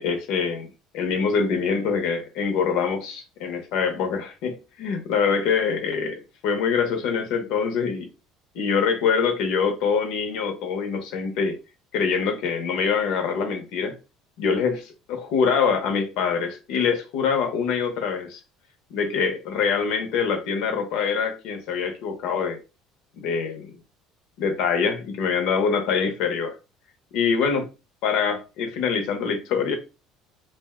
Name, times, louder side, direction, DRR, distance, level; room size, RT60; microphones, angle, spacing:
voice 1, 0.0-8.1 8.5-11.6 11.9-14.0 14.4-18.4 18.9-22.6 23.2-23.7 24.4-26.6 27.1-27.7 28.0-29.8, left 6 dB, 70° left, 0.7 m, -24 dB
2.5 x 2.1 x 3.5 m
cardioid pair, 150°, 0 cm